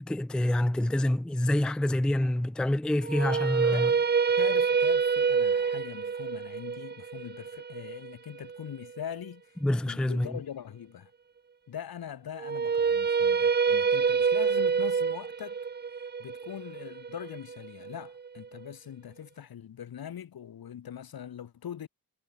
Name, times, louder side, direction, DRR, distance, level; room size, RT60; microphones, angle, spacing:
voice 1, 0.1-3.9 9.6-10.3, left 1 dB, 5° left, 0.4 m, -27 dB
sound 1, 3.0-9.1 12.4-18.5, right 6 dB, 30° right, 0.7 m, -27 dB
voice 2, 3.7-4.1 4.4-9.6 9.9-11.1 11.7-15.6 16.2-21.9, left 9 dB, 80° left, 3.0 m, -42 dB
wide cardioid pair, 165°, 36 cm